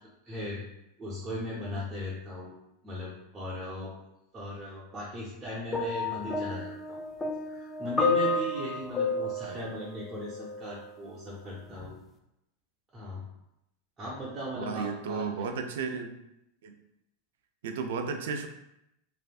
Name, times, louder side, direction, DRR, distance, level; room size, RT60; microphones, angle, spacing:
voice 1, 0.3-0.6 1.0-2.5 2.8-3.9 4.3-7.0 7.4-12.0 12.9-13.2 14.0-15.5, equal, 20° right, -8 dB, 0.8 m, -38 dB
sound 1, 5.7-10.8 11.7-11.9, left 3 dB, 15° left, 0.4 m, -31 dB
voice 2, 14.5-16.2 16.6-16.8 17.6-18.5, right 5 dB, 80° right, 6 dB, 0.4 m, -34 dB
3.2 x 2.5 x 2.4 m, 0.84 s
supercardioid pair, 125°, 0 cm